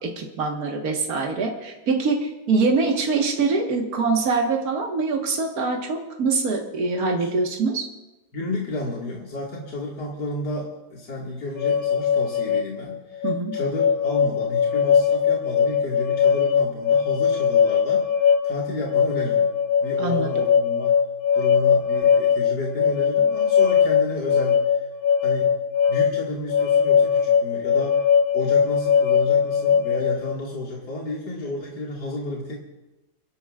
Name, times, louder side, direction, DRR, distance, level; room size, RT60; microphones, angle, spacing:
voice 1, 0.0-7.9 13.2-13.5 20.0-20.3, right 4 dB, 65° right, 1 dB, 2.0 m, -24 dB
voice 2, 7.0-7.3 8.3-18.0 18.4-19.5 19.8-21.0 21.3-24.9 25.2-25.6 25.9-28.0 28.3-32.5, left 1 dB, 80° left, -4 dB, 2.6 m, -31 dB
sound 1, 11.6-30.3, left 7 dB, 40° left, 0.9 m, -20 dB
30.0 x 12.0 x 2.4 m, 1.0 s
omnidirectional pair, 1.7 m